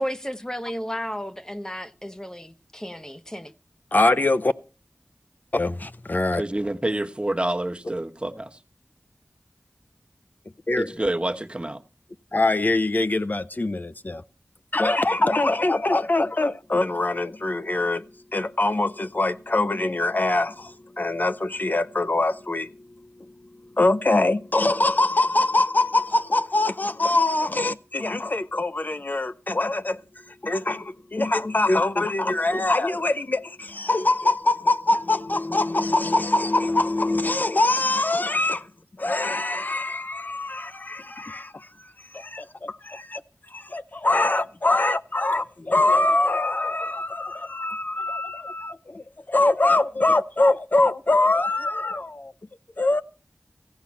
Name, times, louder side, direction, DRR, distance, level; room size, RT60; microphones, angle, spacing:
voice 1, 0.0-3.5, equal, 15° left, 0.8 m, -33 dB
voice 2, 3.9-4.5 5.5-6.4 10.7-11.0 12.3-14.2 14.7-18.0 18.3-22.7 23.8-30.0 30.4-38.7 39.0-41.7 42.1-43.2 43.5-52.3 52.8-53.0, left 2 dB, 45° left, 0.6 m, -23 dB
voice 3, 6.4-8.5 10.8-11.8, right 1 dB, 25° right, 1.2 m, -27 dB
15.5 x 5.7 x 8.4 m
wide cardioid pair, 50°, 4 cm